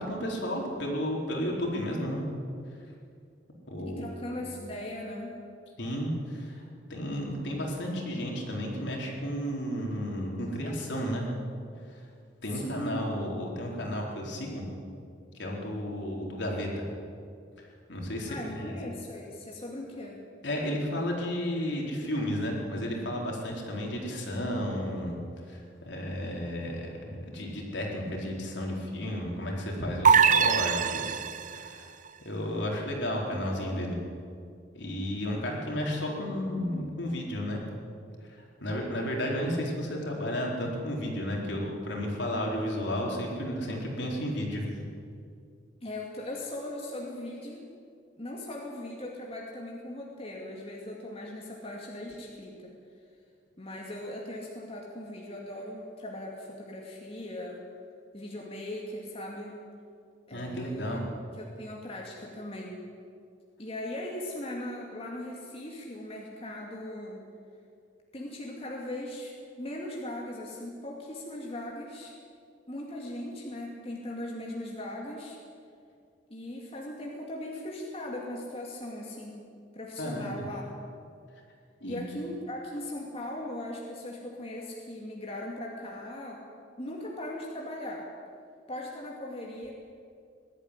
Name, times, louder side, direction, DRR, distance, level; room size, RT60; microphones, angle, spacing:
voice 1, 0.0-2.2 3.7-4.4 5.8-6.6 6.9-11.3 11.9-12.0 12.4-14.6 15.3-16.9 17.9-18.7 20.4-25.2 25.5-31.9 32.2-34.0 34.7-37.6 38.2-44.7 60.3-61.0 80.0-80.4 81.8-82.2, equal, 65° left, -1 dB, 4.3 m, -33 dB
voice 2, 3.9-5.4 12.5-13.1 18.3-20.2 33.3-33.9 45.8-47.6 48.2-52.7 53.6-57.6 58.1-59.6 60.3-61.0 61.6-62.8 63.6-67.2 68.1-72.2 72.7-75.4 76.3-79.4 79.7-80.6 81.8-86.4 86.8-88.1 88.7-89.7, left 1 dB, 30° left, -2 dB, 2.4 m, -39 dB
sound 1, 30.0-31.7, right 7 dB, 40° right, 0.6 m, -22 dB
20.0 x 13.0 x 10.0 m, 2.3 s
head